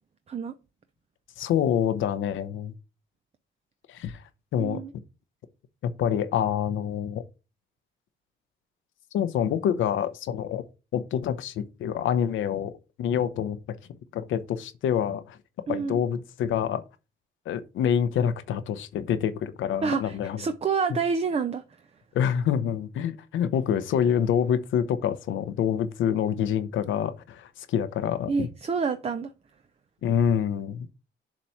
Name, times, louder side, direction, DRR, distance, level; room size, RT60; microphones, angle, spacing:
voice 1, 1.4-2.7 3.9-4.2 4.5-4.8 5.8-7.2 9.1-10.6 10.9-12.7 13.0-13.6 14.1-15.4 15.7-16.8 17.5-20.4 22.1-28.5 30.0-30.9, left 8 dB, 80° left, 0.8 m, -26 dB
voice 2, 4.6-4.9 15.7-16.0 19.8-21.6 28.3-29.3, right 5 dB, 30° right, 0.6 m, -28 dB
7.2 x 3.1 x 5.6 m
cardioid pair, 90°, 20 cm